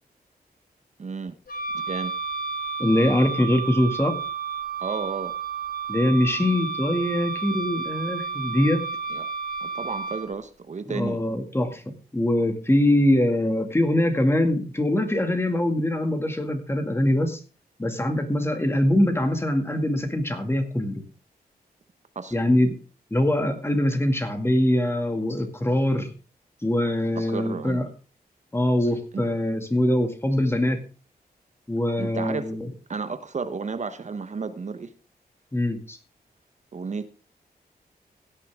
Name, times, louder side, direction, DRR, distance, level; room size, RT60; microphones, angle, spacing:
voice 1, 1.0-1.4 1.9-2.1 4.8-5.3 9.1-9.3 9.6-11.2 22.1-22.4 27.1-27.9 29.1-29.3 32.0-32.6 32.9-34.9 36.7-37.1, right 4 dB, 45° right, 10 dB, 1.0 m, -32 dB
Wind instrument woodwind instrument, 1.5-10.3, right 5 dB, 65° left, 3.4 m, -31 dB
voice 2, 2.8-4.1 5.9-8.8 10.9-11.8 12.1-17.4 17.8-21.0 22.3-22.8 23.1-26.1 26.6-27.9 28.5-30.8 31.7-32.7 35.5-36.0, left 1 dB, 15° left, 6 dB, 2.2 m, -23 dB
16.5 x 9.8 x 3.6 m, 0.35 s
wide cardioid pair, 115°, 16 cm